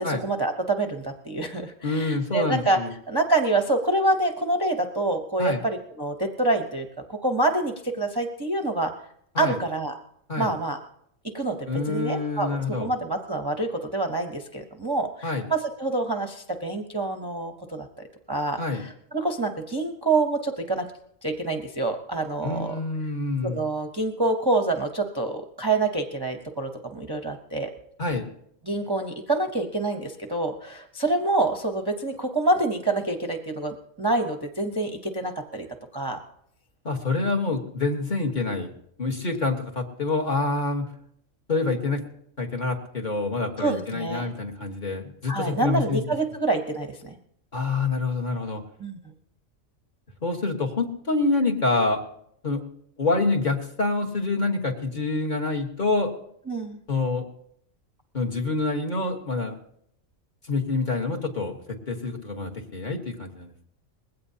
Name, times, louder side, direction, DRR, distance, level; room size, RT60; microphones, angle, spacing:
voice 1, 0.0-2.8 3.1-8.9 9.4-10.0 10.4-10.8 11.3-17.9 18.3-20.9 21.2-22.7 23.4-27.7 28.6-35.7 35.9-36.2 43.6-44.3 45.3-47.2 48.8-49.0 56.5-56.8, right 2 dB, 20° right, 3 dB, 0.7 m, -27 dB
voice 2, 1.8-2.9 5.4-5.6 9.3-9.6 10.3-10.5 11.7-12.9 15.2-15.5 18.6-18.8 22.4-23.6 28.0-28.3 36.8-38.7 39.0-40.9 41.5-42.1 42.4-46.0 47.5-48.6 50.2-52.0 52.4-52.6 53.0-56.1 56.9-57.2 58.1-59.6 60.5-61.6 61.9-63.7, left 3 dB, 35° left, 1 dB, 1.5 m, -26 dB
20.5 x 16.0 x 2.8 m, 0.70 s
omnidirectional pair, 1.4 m